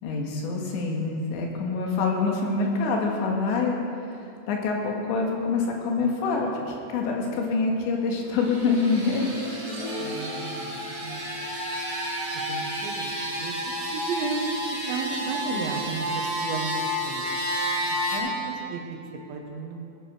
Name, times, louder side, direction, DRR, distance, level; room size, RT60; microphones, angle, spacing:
voice 1, 0.0-3.8 4.5-9.4, left 4 dB, 80° left, 0 dB, 3.9 m, -26 dB
sound 1, 8.2-18.2, equal, 20° right, 4.0 m, -31 dB
sound 2, 9.7-11.2, left 1 dB, 60° right, 0.9 m, -37 dB
voice 2, 10.0-11.3 12.3-13.5 13.8-17.4 17.8-19.0 19.3-19.8, right 4 dB, 85° right, 1 dB, 3.7 m, -34 dB
20.0 x 9.3 x 5.0 m, 2.6 s
omnidirectional pair, 5.1 m